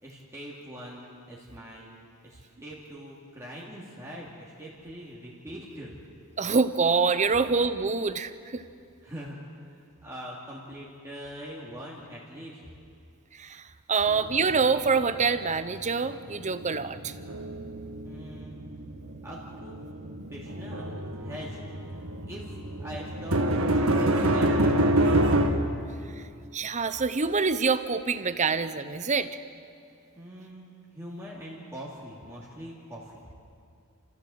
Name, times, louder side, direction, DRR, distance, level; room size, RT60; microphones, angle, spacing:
voice 1, 0.0-2.0 2.2-5.9 9.0-12.6 18.0-18.6 19.2-19.8 20.3-21.6 22.3-25.3 30.2-33.2, equal, 15° right, -5 dB, 2.6 m, -43 dB
voice 2, 6.4-8.6 13.3-17.1 26.2-26.3 26.5-29.3, right 4 dB, 35° right, 12 dB, 0.8 m, -26 dB
sound 1, 14.1-15.8 16.1-25.5, right 1 dB, 70° right, 1.8 m, -27 dB
29.5 x 15.0 x 7.8 m, 2.4 s
head